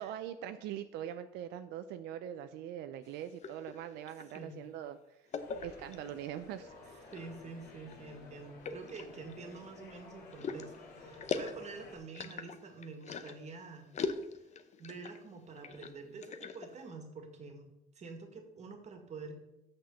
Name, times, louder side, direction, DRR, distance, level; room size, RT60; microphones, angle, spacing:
voice 1, 0.0-5.2 5.6-7.1, right 10 dB, 90° right, 9 dB, 0.5 m, -42 dB
sound 1, 3.1-4.5 5.3-6.2 6.9-7.4 7.8-8.0 8.6-9.7 10.3-13.5 13.9-15.2 15.5-16.8, left 5 dB, 45° left, 0.8 m, -41 dB
sound 2, 5.4-12.0, left 3 dB, 85° left, 2.3 m, -53 dB
voice 2, 7.1-13.9 14.8-17.7 18.0-19.3, right 4 dB, 40° right, 5 dB, 1.9 m, -47 dB
6.5 x 6.2 x 6.9 m, 0.89 s
cardioid pair, 110°, 17 cm